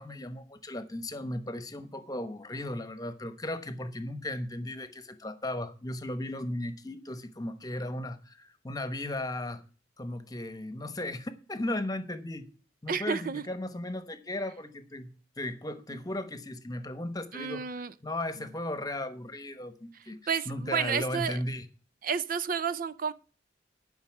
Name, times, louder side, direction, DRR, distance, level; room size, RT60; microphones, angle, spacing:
voice 1, 0.0-9.6 10.0-12.5 12.8-17.7 18.0-21.7, left 1 dB, 20° left, 1.0 m, -36 dB
voice 2, 12.9-13.4 17.3-17.9 20.3-21.4 22.0-23.1, right 6 dB, 50° right, 0.5 m, -31 dB
11.5 x 5.4 x 7.3 m
head